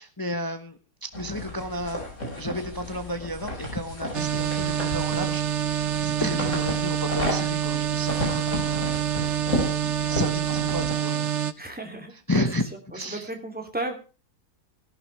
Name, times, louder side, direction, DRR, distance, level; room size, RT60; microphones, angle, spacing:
voice 1, 0.0-2.0 2.4-11.4 12.3-12.7 12.9-13.3, left 1 dB, 15° left, 7 dB, 1.0 m, -32 dB
sound 1, 1.1-10.9, left 1 dB, 50° left, 5.7 m, -33 dB
sound 2, 4.1-11.5, right 9 dB, 55° right, 1.0 m, -26 dB
voice 2, 11.6-12.5 12.9-13.9, right 2 dB, 5° right, 3 dB, 2.6 m, -34 dB
17.5 x 12.0 x 3.3 m, 0.34 s
omnidirectional pair, 1.7 m